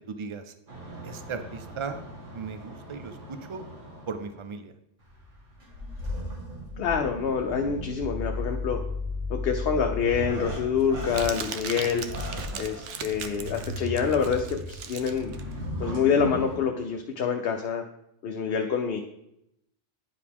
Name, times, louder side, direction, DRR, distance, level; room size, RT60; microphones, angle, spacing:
voice 1, 0.1-0.6 1.0-2.0 2.3-3.7 4.1-4.7 12.3-12.7, right 5 dB, 50° right, 9 dB, 0.3 m, -37 dB
sound 1, 0.7-4.4 5.0-16.6, left 1 dB, 90° right, 2.5 m, -36 dB
voice 2, 6.8-8.8 9.3-12.0 12.6-15.3 15.8-17.8 18.2-19.0, left 6 dB, 60° left, 4 dB, 0.8 m, -26 dB
Crumpling crinkling, 9.5-16.6, right 7 dB, 75° right, 0.9 m, -39 dB
9.8 x 4.8 x 3.6 m, 0.80 s
omnidirectional pair, 1.2 m